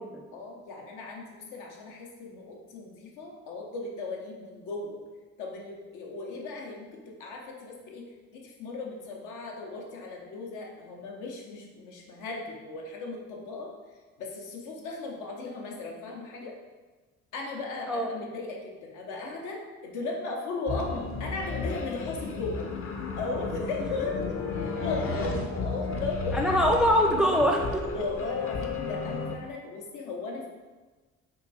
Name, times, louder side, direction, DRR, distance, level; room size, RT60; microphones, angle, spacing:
voice 1, 0.3-5.0 5.4-8.0 8.3-13.7 14.2-16.5 17.3-22.7 23.1-24.2 24.8-26.4 27.9-30.5, left 3 dB, 90° left, -1 dB, 0.8 m, -36 dB
sound 1, 20.7-29.4, left 4 dB, 45° left, 0.5 m, -33 dB
voice 2, 26.3-27.8, equal, ahead, 1 dB, 0.4 m, -24 dB
3.8 x 2.3 x 4.0 m, 1.3 s
cardioid pair, 90°, 30 cm